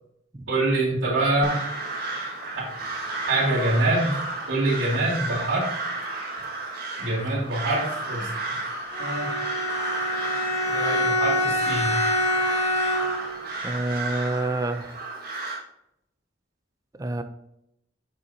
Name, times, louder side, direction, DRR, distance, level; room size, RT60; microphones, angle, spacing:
voice 1, 0.5-1.6 2.4-2.7 3.3-4.2 4.5-5.7 7.0-8.3 9.0-9.3 10.7-12.0, right 2 dB, 85° right, -11 dB, 2.5 m, -25 dB
Crow, 1.4-15.6, right 2 dB, 50° right, 1.8 m, -32 dB
Bowed string instrument, 8.9-13.4, left 1 dB, 35° left, 1.4 m, -26 dB
voice 2, 13.6-15.0 16.9-17.2, right 2 dB, 20° right, 9 dB, 0.4 m, -28 dB
7.2 x 6.8 x 2.7 m, 0.78 s
head